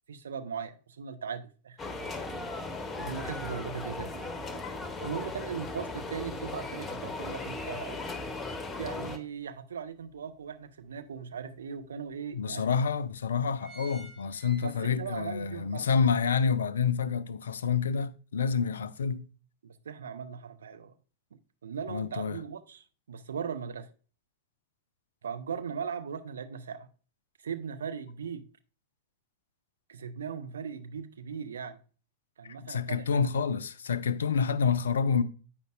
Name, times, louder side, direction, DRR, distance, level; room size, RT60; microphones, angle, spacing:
voice 1, 0.1-1.8 3.0-4.3 5.0-8.1 8.8-12.9 14.6-15.9 19.6-20.9 21.6-23.9 25.2-26.9 27.4-28.4 29.9-31.8 32.4-33.3, right 6 dB, 65° right, 0.5 m, -38 dB
sound 1, 1.8-9.2, left 3 dB, 15° left, 0.8 m, -37 dB
sound 2, 9.4-9.5 9.9-11.1 11.7-11.8 12.1-12.2 12.9-13.1 13.3-15.2 15.6-15.7, right 3 dB, 20° right, 2.0 m, -50 dB
voice 2, 12.3-19.3 21.9-22.4 32.6-35.2, left 6 dB, 65° left, 0.4 m, -28 dB
8.4 x 5.2 x 2.4 m
figure-of-eight pair, 90°, 0 cm